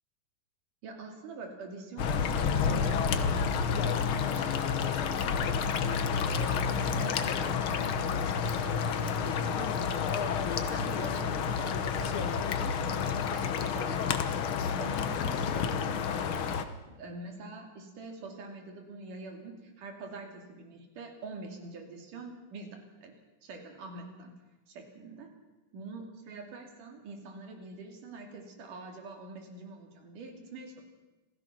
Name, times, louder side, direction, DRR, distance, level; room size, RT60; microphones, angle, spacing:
voice 1, 0.8-23.1 23.4-24.3 24.7-25.3 25.7-30.8, right 3 dB, 85° right, 2 dB, 4.3 m, -45 dB
sound 1, 2.0-16.6, left 6 dB, 60° left, 1.4 m, -30 dB
27.0 x 16.0 x 6.0 m, 1.1 s
omnidirectional pair, 3.6 m